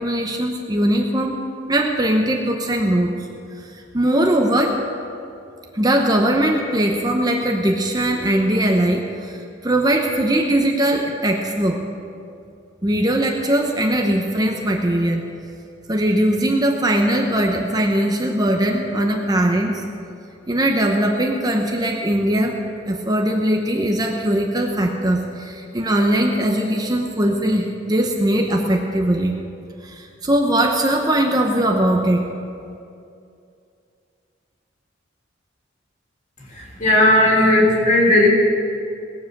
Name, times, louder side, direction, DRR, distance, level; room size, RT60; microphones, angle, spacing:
voice 1, 0.0-1.4 1.7-3.1 3.7-4.8 5.7-9.4 9.6-11.8 12.8-15.3 15.9-19.8 20.5-22.6 22.9-29.3 29.8-32.3, right 1 dB, 20° right, 2 dB, 0.9 m, -20 dB
voice 2, 36.5-38.3, left 1 dB, 40° left, -3 dB, 3.4 m, -15 dB
19.5 x 7.6 x 6.7 m, 2.5 s
head